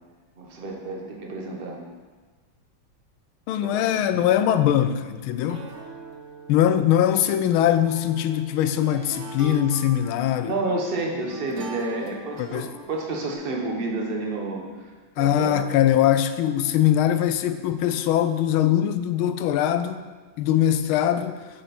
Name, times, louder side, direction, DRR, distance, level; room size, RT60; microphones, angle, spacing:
voice 1, 0.4-1.8 3.6-4.0 10.5-14.6 15.2-15.7, right 2 dB, 35° right, 1.2 m, -30 dB
voice 2, 3.5-5.7 6.5-10.5 12.4-12.7 15.2-20.0 20.4-21.4, left 11 dB, 85° left, 1.4 m, -22 dB
sound 1, 3.9-13.3, right 4 dB, 55° right, 0.9 m, -43 dB
8.2 x 7.6 x 4.3 m
omnidirectional pair, 2.2 m